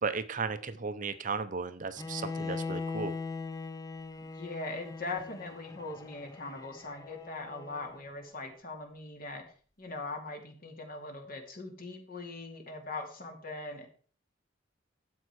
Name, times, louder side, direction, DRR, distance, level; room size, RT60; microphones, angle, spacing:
voice 1, 0.0-3.2, right 4 dB, 40° right, 12 dB, 0.7 m, -35 dB
Bowed string instrument, 2.0-8.0, left 4 dB, 20° left, 0.7 m, -40 dB
voice 2, 4.2-9.4 9.8-13.9, left 3 dB, 50° left, 4 dB, 2.5 m, -41 dB
12.5 x 8.0 x 4.8 m, 0.44 s
head